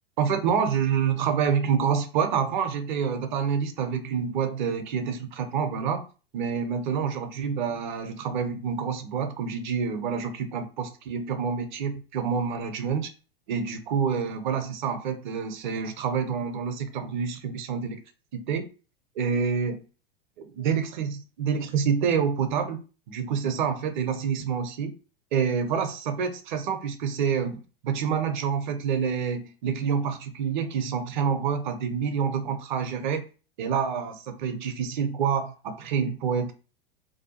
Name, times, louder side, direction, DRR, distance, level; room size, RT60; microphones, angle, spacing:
voice 1, 0.2-6.0 6.3-13.1 13.5-18.0 18.3-18.7 19.2-19.8 20.4-22.8 23.1-24.9 25.3-33.2 33.6-36.5, right 6 dB, 50° right, 0.6 m, -27 dB
2.6 x 2.3 x 2.8 m
figure-of-eight pair, 90°, 30 cm